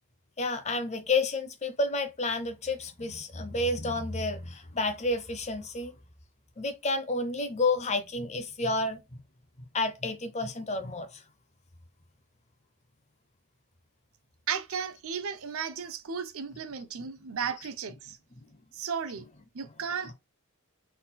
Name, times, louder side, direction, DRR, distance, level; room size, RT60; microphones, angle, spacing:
voice 1, 0.4-5.9 6.6-9.2 9.7-11.2 16.5-16.6 17.0-17.1 17.4-17.5 17.9-18.0 19.6-19.7 20.0-20.1, left 2 dB, 30° left, 0.7 m, -30 dB
voice 2, 14.5-18.2 18.7-19.3 19.5-20.1, right 6 dB, 65° right, 0.6 m, -34 dB
4.2 x 4.0 x 2.2 m
head